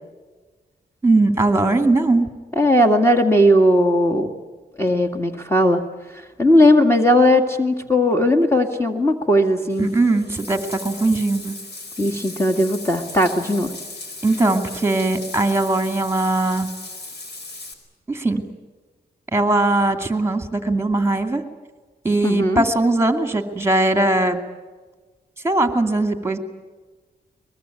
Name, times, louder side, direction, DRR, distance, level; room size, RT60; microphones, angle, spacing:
voice 1, 1.0-2.3 9.8-11.6 14.2-16.7 18.1-18.4 19.3-21.4 22.0-24.4 25.4-26.4, right 2 dB, 15° right, 7 dB, 2.5 m, -20 dB
voice 2, 2.6-4.3 4.8-5.8 6.1-9.9 12.0-13.7 22.2-22.6, left 1 dB, 15° left, 4 dB, 2.1 m, -17 dB
Bathtub (filling or washing), 9.7-17.7, left 2 dB, 75° left, 4.6 m, -37 dB
23.0 x 21.5 x 9.2 m, 1.3 s
cardioid pair, 80°, 17 cm